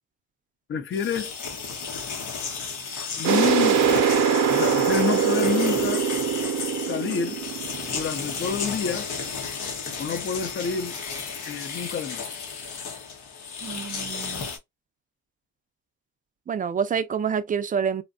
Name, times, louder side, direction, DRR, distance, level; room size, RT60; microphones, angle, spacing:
voice 1, 0.7-1.3 3.2-4.1 4.5-6.0 6.8-7.4 7.9-9.1 10.0-11.0 11.5-12.3, left 7 dB, 40° left, 0.6 m, -28 dB
sound 1, 0.9-14.6, left 5 dB, 80° left, 0.9 m, -33 dB
sound 2, 3.2-8.7, right 7 dB, 80° right, 0.5 m, -23 dB
voice 2, 13.6-14.5 16.5-18.0, right 7 dB, 30° right, 0.3 m, -27 dB
2.7 x 2.1 x 2.4 m
cardioid pair, 90°, 30 cm